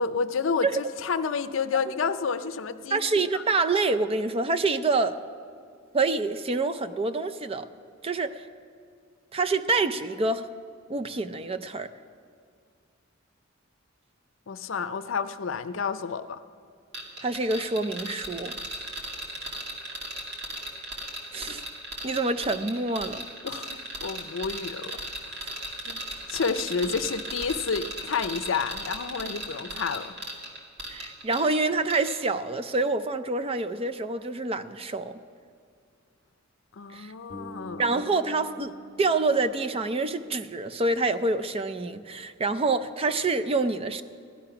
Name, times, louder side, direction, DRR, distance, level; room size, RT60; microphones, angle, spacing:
voice 1, 0.0-3.4 14.5-16.4 23.4-24.9 25.9-26.0 26.3-30.2 36.8-37.8, left 5 dB, 70° left, 11 dB, 0.6 m, -30 dB
voice 2, 2.9-5.2 5.9-7.7 8.0-8.4 9.3-10.5 10.9-11.9 17.2-18.5 21.3-21.6 22.0-23.2 30.9-35.2 36.9-37.1 37.8-44.0, right 3 dB, 30° right, 10 dB, 0.5 m, -27 dB
sound 1, 16.9-31.6 31.9-32.1, right 1 dB, 55° right, 2.2 m, -36 dB
Bass guitar, 37.3-41.2, right 1 dB, 35° left, 1.5 m, -46 dB
16.0 x 12.0 x 5.8 m, 2.2 s
head